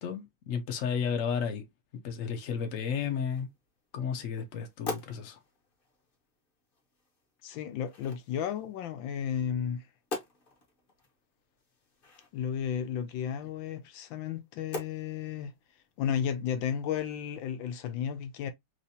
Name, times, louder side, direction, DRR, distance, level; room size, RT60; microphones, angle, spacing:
voice 1, 0.0-1.7 2.0-3.5 3.9-5.4, left 7 dB, 60° left, 0.9 m, -33 dB
sound 1, 2.5-17.4, left 3 dB, 35° left, 1.0 m, -47 dB
voice 2, 7.4-9.8 12.3-15.5 16.0-18.5, left 8 dB, 75° left, 1.3 m, -33 dB
3.2 x 3.1 x 2.7 m
omnidirectional pair, 2.2 m